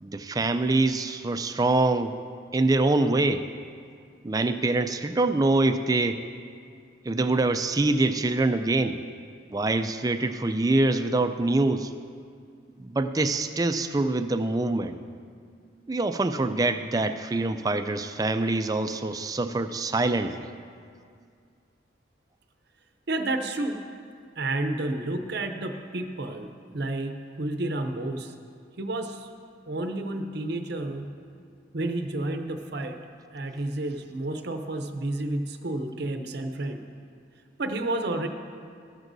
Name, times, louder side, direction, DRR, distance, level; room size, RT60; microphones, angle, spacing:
voice 1, 0.0-2.2 2.5-3.5 4.2-6.2 7.0-9.0 9.5-11.9 12.8-15.0 15.9-20.5, right 2 dB, 20° right, 9 dB, 0.3 m, -25 dB
voice 2, 23.1-23.8 24.4-26.5 26.7-28.3 28.8-29.3 29.7-31.1 31.7-33.0 33.3-36.8 37.6-38.3, right 2 dB, 55° right, 6 dB, 0.6 m, -30 dB
14.0 x 12.5 x 2.7 m, 2.2 s
head